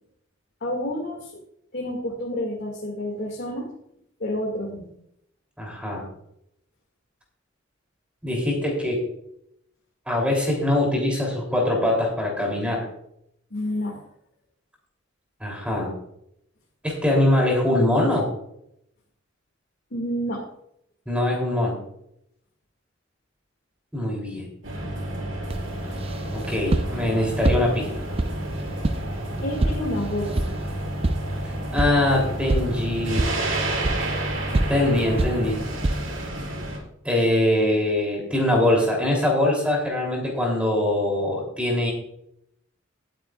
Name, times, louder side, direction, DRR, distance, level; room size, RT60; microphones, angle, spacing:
voice 1, 0.6-1.3 1.7-3.7 4.2-4.9 13.5-14.0 19.9-20.4 29.4-30.6, left 1 dB, 55° left, -2 dB, 2.3 m, -29 dB
voice 2, 5.6-6.0 8.2-9.0 10.1-12.9 15.4-15.9 16.8-18.3 21.1-21.8 23.9-24.5 26.3-27.9 31.7-33.3 34.7-35.6 37.0-41.9, left 1 dB, 5° right, -1 dB, 3.2 m, -23 dB
sound 1, 24.6-36.8, right 1 dB, 80° right, 4.6 m, -30 dB
sound 2, 25.5-36.3, right 2 dB, 30° right, 0.5 m, -28 dB
18.5 x 9.1 x 2.5 m, 0.75 s
head